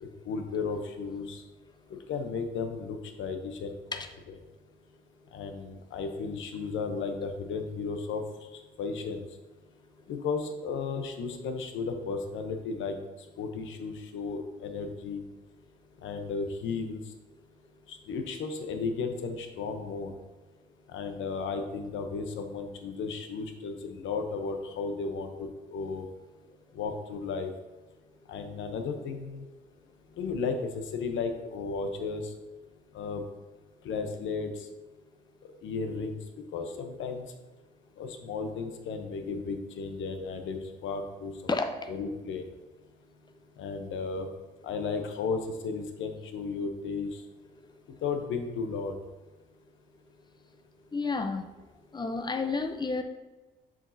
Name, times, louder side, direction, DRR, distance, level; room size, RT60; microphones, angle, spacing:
voice 1, 0.0-1.4 2.1-4.0 4.3-4.4 5.3-8.2 8.5-9.2 10.1-13.0 13.4-15.2 16.0-17.0 17.9-20.1 20.9-26.0 26.7-27.5 28.3-29.4 30.2-32.3 32.9-33.2 33.8-34.7 35.6-36.2 36.5-37.3 38.0-41.3 41.9-42.5 43.6-44.3 44.6-47.2 48.0-48.9, left 4 dB, 75° left, 6 dB, 0.8 m, -34 dB
voice 2, 50.9-51.5 51.9-53.0, left 3 dB, 20° left, 7 dB, 0.6 m, -30 dB
7.3 x 5.1 x 2.7 m, 1.2 s
cardioid pair, 90°, 20 cm